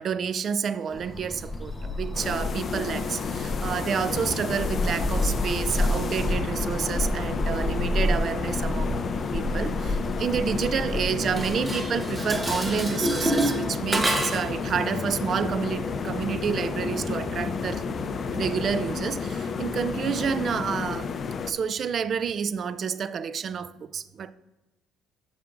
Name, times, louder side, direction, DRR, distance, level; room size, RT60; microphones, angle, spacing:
voice 1, 0.0-9.0 9.3-17.8 18.3-21.1 21.5-24.3, right 7 dB, 45° right, 0.4 m, -29 dB
sound 1, 0.9-19.2, left 1 dB, 15° left, 0.9 m, -31 dB
sound 2, 2.1-21.5, left 5 dB, 40° left, 0.5 m, -32 dB
Dishes pots and pans, 11.2-14.6, right 1 dB, 15° right, 1.0 m, -28 dB
10.5 x 6.9 x 2.5 m
cardioid pair, 115°, 0 cm